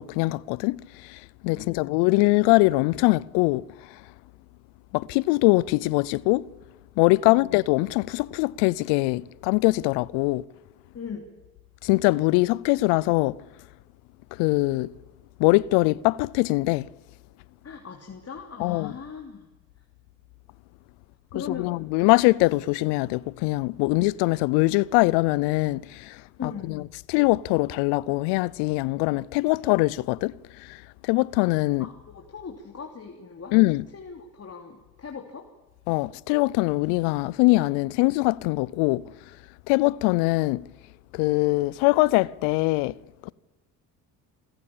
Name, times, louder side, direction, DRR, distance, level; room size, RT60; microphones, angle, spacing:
voice 1, 0.0-3.6 3.9-4.0 4.9-6.5 7.0-10.4 11.8-13.4 14.3-14.9 15.4-16.9 18.6-18.9 21.5-26.8 27.1-31.9 33.5-33.8 35.9-39.0 39.7-40.6 41.1-42.9 43.2-43.3, left 22 dB, 85° left, 0.6 m, -22 dB
voice 2, 1.5-1.8 7.2-7.4 10.9-11.3 17.6-19.5 21.3-21.7 26.4-26.8 31.8-33.6 33.9-35.5, left 6 dB, 40° left, 3.0 m, -39 dB
27.0 x 14.5 x 8.6 m
supercardioid pair, 70°, 39 cm